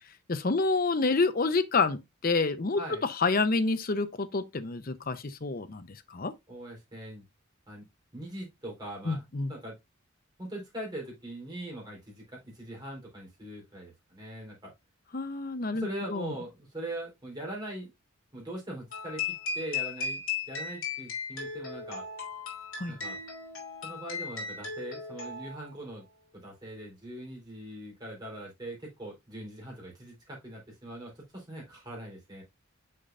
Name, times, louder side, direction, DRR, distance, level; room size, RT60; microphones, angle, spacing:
voice 1, 0.3-6.3 9.0-9.5 15.1-16.4 22.8-23.0, left 3 dB, 40° left, 0.7 m, -28 dB
voice 2, 6.5-7.2 7.7-7.9 8.1-9.2 9.5-9.8 10.4-14.7 15.7-17.9 18.3-22.0 22.9-23.2 23.8-26.0 26.3-32.4, right 1 dB, 20° right, 3.7 m, -41 dB
sound 1, 18.9-25.7, left 5 dB, 65° left, 3.2 m, -36 dB
6.7 x 5.5 x 2.5 m
head